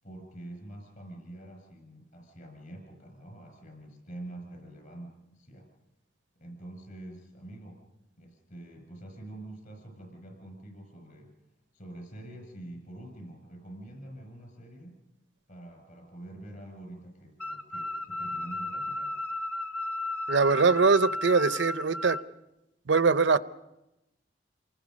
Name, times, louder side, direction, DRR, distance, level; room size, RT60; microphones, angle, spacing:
voice 1, 0.0-5.7 6.4-7.8 8.2-11.3 11.7-15.0 15.5-19.2, right 1 dB, 50° left, 6.1 m, -46 dB
sound 1, 17.4-22.2, left 2 dB, 5° left, 0.8 m, -34 dB
voice 2, 20.3-22.2 22.9-23.4, right 4 dB, 80° right, 0.7 m, -22 dB
28.0 x 20.5 x 5.3 m
head